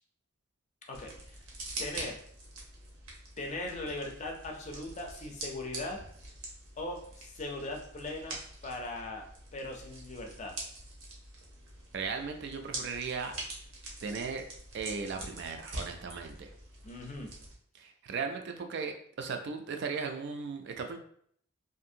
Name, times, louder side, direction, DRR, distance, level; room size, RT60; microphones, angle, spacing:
voice 1, 0.9-1.4 1.8-2.2 3.4-6.1 6.8-7.0 7.2-8.4 8.6-9.2 9.5-10.5 16.8-17.3, left 2 dB, 35° left, 1 dB, 0.5 m, -39 dB
sound 1, 0.9-17.5, right 2 dB, 90° right, 0.8 m, -45 dB
voice 2, 11.9-13.3 14.0-14.4 14.7-16.5 17.7-21.0, right 5 dB, 55° right, 5 dB, 0.3 m, -37 dB
2.6 x 2.5 x 2.7 m, 0.63 s
head